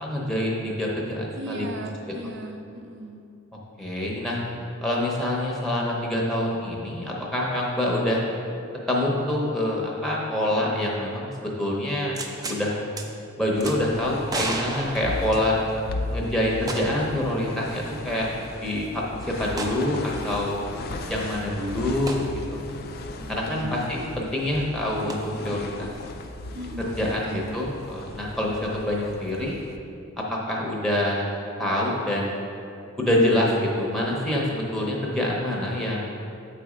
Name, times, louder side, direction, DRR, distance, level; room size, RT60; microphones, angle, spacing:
voice 1, 0.0-1.7 3.8-4.4 4.8-8.2 8.9-12.2 12.4-12.8 13.4-15.6 16.1-18.3 18.5-19.0 19.4-20.6 21.1-22.6 23.3-25.9 26.8-29.6 30.3-31.3 31.6-32.4 33.0-36.1, left 1 dB, ahead, -3 dB, 0.8 m, -26 dB
voice 2, 1.4-3.3 23.2-23.7 26.5-27.5, right 1 dB, 55° right, 3 dB, 0.6 m, -37 dB
sound 1, 12.1-12.6 13.0-13.1 13.6-13.8 14.3-15.8 16.7-17.1 17.4-17.5 19.6-19.8 22.1-22.3 25.1-25.2, right 2 dB, 20° right, 0.4 m, -31 dB
sound 2, 13.5-29.8, left 2 dB, 45° left, 0.4 m, -37 dB
7.7 x 4.1 x 4.9 m, 2.6 s
head